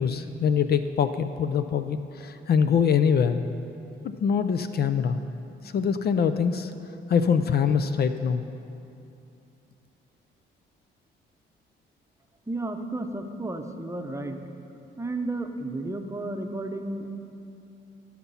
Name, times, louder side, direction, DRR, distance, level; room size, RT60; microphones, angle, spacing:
voice 1, 0.0-3.4 4.0-5.2 5.7-6.7 7.1-8.4, left 7 dB, 55° left, 10 dB, 0.5 m, -24 dB
voice 2, 12.5-14.4 15.0-17.2, right 2 dB, 15° right, 5 dB, 0.8 m, -32 dB
17.0 x 6.0 x 5.6 m, 2.7 s
cardioid pair, 90°, 20 cm